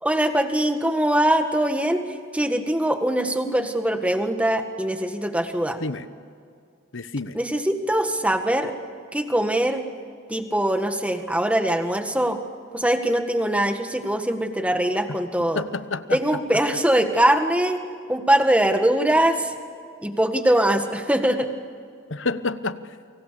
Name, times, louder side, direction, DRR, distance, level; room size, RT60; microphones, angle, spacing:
voice 1, 0.0-5.8 7.3-8.7 9.1-9.8 10.3-12.4 12.7-15.6 16.1-17.8 18.1-19.5 20.0-21.5, right 1 dB, 5° right, 6 dB, 1.6 m, -22 dB
voice 2, 6.9-7.4 15.5-16.4 22.1-23.0, left 3 dB, 65° left, 13 dB, 1.0 m, -29 dB
30.0 x 25.5 x 6.9 m, 2.3 s
head